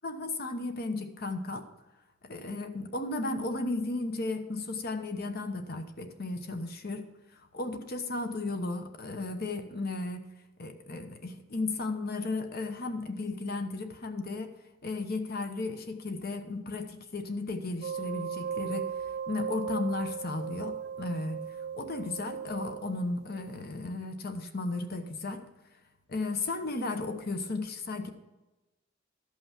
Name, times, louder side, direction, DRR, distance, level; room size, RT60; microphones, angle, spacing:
voice 1, 0.0-1.6 2.2-7.1 7.3-10.2 10.6-14.5 14.8-18.9 19.3-21.4 21.7-25.5 26.1-28.1, left 2 dB, 50° left, 7 dB, 1.0 m, -34 dB
sound 1, 17.8-23.6, right 7 dB, 55° right, 0.4 m, -37 dB
13.0 x 5.7 x 5.9 m, 1.1 s
head